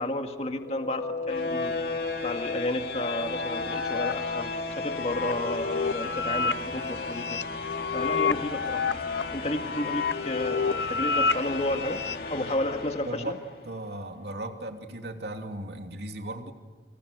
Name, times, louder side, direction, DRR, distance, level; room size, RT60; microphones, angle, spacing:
voice 1, 0.0-7.4 7.9-8.8 9.3-12.0 12.3-13.4, left 1 dB, 35° left, 5 dB, 2.1 m, -32 dB
sound 1, 0.6-13.6, left 3 dB, 55° left, 2.7 m, -35 dB
sound 2, 1.8-12.2, left 5 dB, 75° left, 0.7 m, -31 dB
voice 2, 13.0-13.3 13.6-16.5, right 1 dB, 65° right, 4 dB, 2.8 m, -36 dB
29.5 x 26.5 x 6.8 m, 1.4 s
head